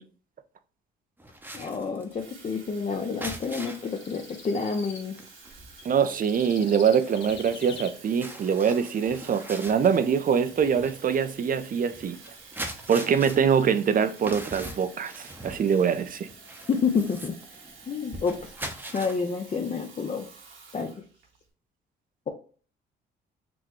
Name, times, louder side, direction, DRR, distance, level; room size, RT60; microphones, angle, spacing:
sound 1, 1.2-4.0 4.4-4.6 4.9-19.2, right 1 dB, 10° right, 0.8 m, -42 dB
voice 1, 1.5-5.1 16.7-17.4 17.9-18.5 18.9-20.3 20.7-20.9, left 5 dB, 35° left, 0.6 m, -29 dB
Water tap faucet / Fill (with liquid), 1.7-21.4, right 4 dB, 75° right, 1.4 m, -50 dB
sound 2, 3.6-5.0 5.8-7.9, left 5 dB, 70° left, 1.0 m, -44 dB
voice 2, 5.8-12.2 12.9-16.3, right 7 dB, 45° right, 0.5 m, -24 dB
6.0 x 2.2 x 3.0 m
cardioid pair, 90°, 20 cm